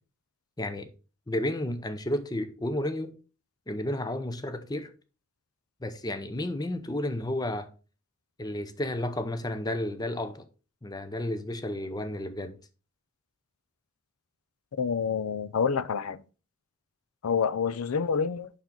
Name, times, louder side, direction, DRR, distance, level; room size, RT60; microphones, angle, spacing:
voice 1, 0.6-0.9 1.3-3.1 3.7-4.9 5.8-7.7 8.4-10.4 10.8-12.6, left 1 dB, 15° left, 0.6 m, -32 dB
voice 2, 14.8-16.2 17.2-18.5, left 6 dB, 85° left, 0.5 m, -27 dB
7.2 x 5.8 x 3.8 m
head